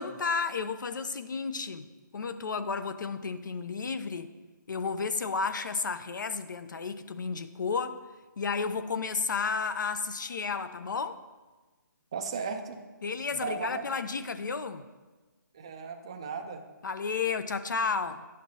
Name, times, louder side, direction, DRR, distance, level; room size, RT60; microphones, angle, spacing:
voice 1, 0.0-1.9 2.1-4.3 4.7-8.0 8.4-11.2 13.0-14.8 16.8-18.2, left 5 dB, 70° left, 11 dB, 0.6 m, -32 dB
voice 2, 12.1-12.8 13.3-13.8 15.5-16.6, right 5 dB, 15° right, 5 dB, 0.3 m, -36 dB
11.0 x 6.6 x 2.7 m, 1.3 s
hypercardioid pair, 170°, 11 cm